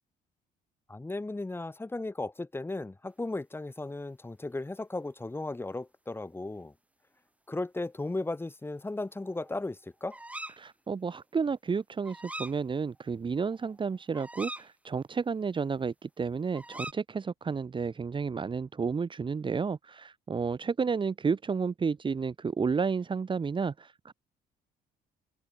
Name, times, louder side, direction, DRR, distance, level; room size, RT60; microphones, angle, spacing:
voice 1, 0.9-6.7 7.5-10.2, left 2 dB, 15° left, 7.5 m, -36 dB
sound 1, 9.0-9.6 10.1-10.6 12.0-12.6 13.0-13.1 13.4-14.7 16.5-16.9, right 1 dB, 10° right, 4.9 m, -42 dB
voice 2, 10.6-24.1, right 5 dB, 30° right, 2.7 m, -31 dB
cardioid pair, 110°, 17 cm